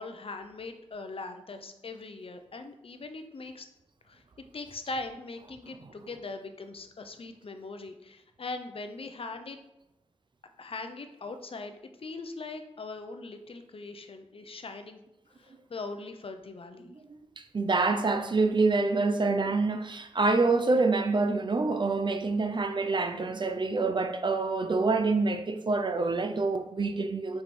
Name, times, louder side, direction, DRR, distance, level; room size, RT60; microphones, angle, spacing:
voice 1, 0.0-3.7 4.1-4.2 4.5-9.6 10.6-11.7 12.0-15.0 15.4-16.9, left 3 dB, 55° left, 0.6 m, -40 dB
voice 2, 17.4-27.4, right 3 dB, 45° right, 0.5 m, -26 dB
5.0 x 4.6 x 4.2 m
wide cardioid pair, 95°, 11 cm